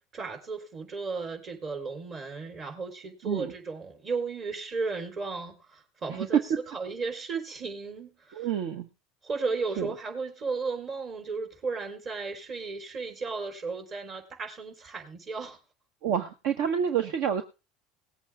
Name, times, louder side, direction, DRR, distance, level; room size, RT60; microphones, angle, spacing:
voice 1, 0.1-6.4 6.7-8.5 9.2-15.6, right 4 dB, 40° right, 4.6 m, -35 dB
voice 2, 8.3-8.9 9.8-9.9 16.0-17.4, right 8 dB, 70° right, 1.4 m, -29 dB
19.5 x 8.3 x 3.7 m
hypercardioid pair, 80°, 0 cm